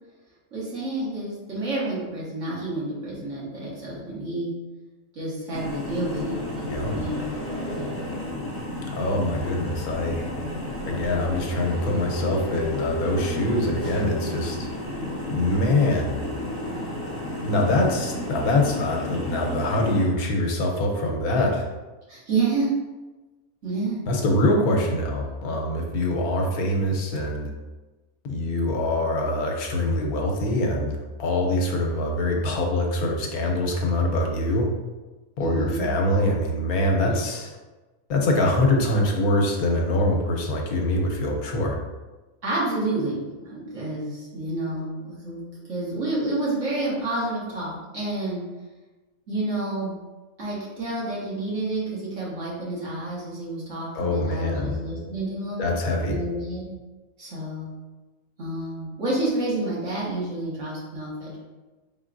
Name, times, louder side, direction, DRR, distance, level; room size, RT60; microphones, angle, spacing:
voice 1, 0.5-4.5 5.1-7.3 7.7-8.1 22.1-22.7 23.6-24.0 35.4-35.9 37.1-37.2 42.4-45.4 45.7-48.4 49.3-49.9 50.4-55.6 56.1-56.7 57.2-57.7 58.4-61.4, right 2 dB, 55° right, -7 dB, 1.8 m, -29 dB
sound 1, 5.5-20.1, left 1 dB, 15° left, 0.5 m, -32 dB
voice 2, 8.9-10.3 10.9-14.7 15.3-16.2 17.4-21.7 24.1-27.5 28.2-34.7 35.4-37.6 38.1-41.8 53.9-54.8 55.6-56.2, left 1 dB, 80° left, 1 dB, 1.2 m, -24 dB
4.6 x 3.7 x 2.5 m, 1.2 s
omnidirectional pair, 1.6 m